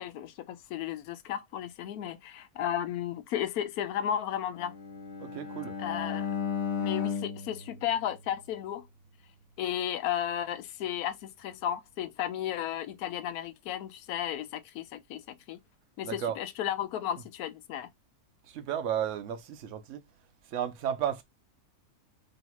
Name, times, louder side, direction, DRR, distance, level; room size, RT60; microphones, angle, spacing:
voice 1, 0.0-4.8 5.8-6.3 6.8-8.9 9.6-15.6 16.0-17.9, left 10 dB, 80° left, 1.0 m, -34 dB
Bowed string instrument, 4.6-8.7, left 6 dB, 45° left, 1.3 m, -35 dB
voice 2, 5.2-5.8 16.0-16.4 18.5-20.0 20.5-21.2, right 9 dB, 60° right, 1.0 m, -33 dB
3.1 x 2.8 x 4.3 m
omnidirectional pair, 1.6 m